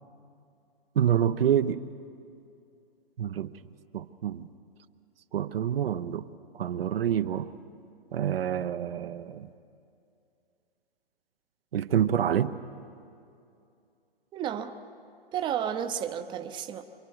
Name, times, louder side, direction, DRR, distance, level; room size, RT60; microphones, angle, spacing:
voice 1, 1.0-1.8 3.2-3.5 3.9-4.5 5.3-6.3 6.5-7.5 8.1-9.5 11.7-12.6, right 9 dB, 70° right, 0.9 m, -27 dB
voice 2, 14.3-14.8 15.3-16.8, right 9 dB, 15° right, 0.8 m, -32 dB
27.0 x 23.0 x 4.8 m
hypercardioid pair, 135°, 30 cm